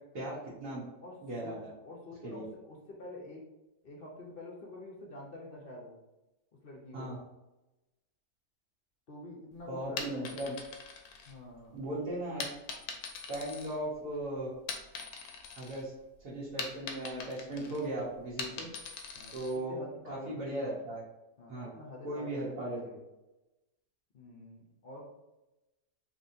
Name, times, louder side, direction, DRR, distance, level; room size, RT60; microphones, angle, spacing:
voice 1, 0.1-0.8 1.2-1.7 2.2-2.5 6.9-7.2 9.7-10.5 11.7-12.5 13.3-14.5 15.6-15.9 16.2-18.7 19.3-19.8 20.1-21.0 21.5-21.7 22.0-22.8, right 1 dB, 80° right, -8 dB, 1.6 m, -37 dB
voice 2, 1.0-1.6 1.9-3.4 3.8-6.0 6.5-7.1 9.1-10.3 11.3-11.8 17.5-17.7 18.4-18.7 19.2-20.7 21.4-23.0 24.1-25.0, left 2 dB, 55° left, -2 dB, 0.6 m, -47 dB
sound 1, 9.8-11.8 12.4-14.2 14.5-15.8 16.2-19.6, left 5 dB, 75° left, 1.1 m, -42 dB
4.0 x 3.0 x 2.6 m, 1.0 s
omnidirectional pair, 1.6 m